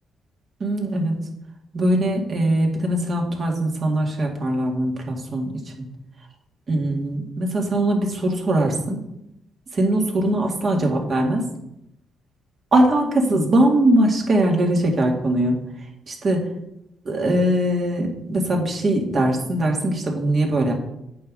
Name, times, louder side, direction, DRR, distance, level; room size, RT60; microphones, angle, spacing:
voice 1, 0.6-1.2 1.7-5.9 6.7-9.0 9.7-11.5 12.7-15.6 16.1-16.5 17.1-20.7, right 1 dB, 45° right, 1 dB, 2.0 m, -21 dB
8.4 x 3.8 x 6.1 m, 0.82 s
cardioid pair, 90°, 0 cm